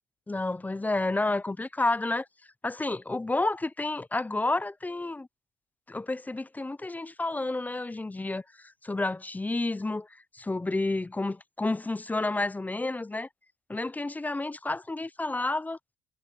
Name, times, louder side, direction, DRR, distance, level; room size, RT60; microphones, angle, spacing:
voice 1, 0.3-2.3 2.6-5.3 5.9-13.3 13.7-15.8, left 2 dB, 10° left, 0.4 m, -30 dB
cardioid pair, 110°, 17 cm